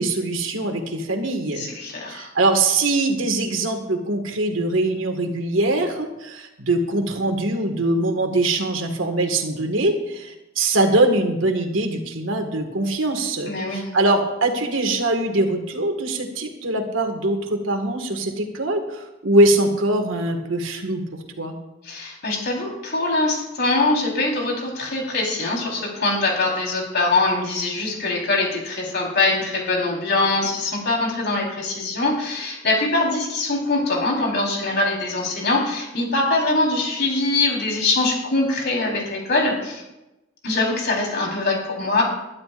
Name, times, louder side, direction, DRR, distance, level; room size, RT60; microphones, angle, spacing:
voice 1, 0.0-1.7 2.1-21.0 21.4-21.6, right 2 dB, 80° right, 4 dB, 2.0 m, -22 dB
voice 2, 1.5-2.3 13.4-13.9 21.8-39.8 40.4-42.0, left 2 dB, 55° left, -1 dB, 4.3 m, -23 dB
21.5 x 12.0 x 2.6 m, 0.97 s
head